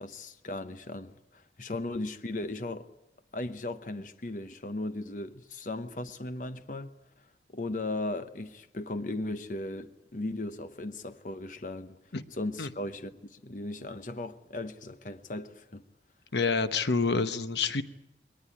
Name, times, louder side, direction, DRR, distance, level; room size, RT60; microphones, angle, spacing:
voice 1, 0.0-2.9 3.3-6.9 7.5-12.0 12.3-15.8, left 2 dB, 45° left, 0.9 m, -37 dB
voice 2, 16.3-17.8, left 4 dB, 80° left, 1.1 m, -27 dB
22.0 x 19.0 x 9.6 m
head